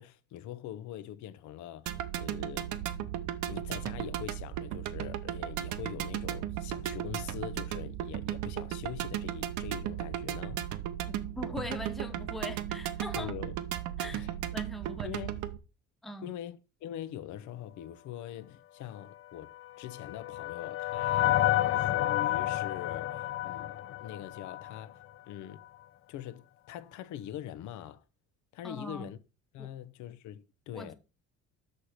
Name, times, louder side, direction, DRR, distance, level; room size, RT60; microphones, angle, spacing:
voice 1, 0.0-2.7 3.5-10.7 13.1-13.5 14.1-14.4 15.0-15.4 16.2-25.6 26.1-28.0 28.5-29.2 29.5-30.9, left 11 dB, 75° left, 0.8 m, -43 dB
sound 1, 1.9-15.6, right 11 dB, 80° right, 0.8 m, -36 dB
voice 2, 11.1-13.3 14.0-14.2 14.5-15.1 16.0-16.3 28.6-29.1 29.6-29.7 30.7-30.9, left 1 dB, ahead, 0.6 m, -41 dB
sound 2, 19.5-24.8, left 14 dB, 50° left, 0.4 m, -30 dB
6.5 x 4.3 x 6.4 m
cardioid pair, 165°, 30 cm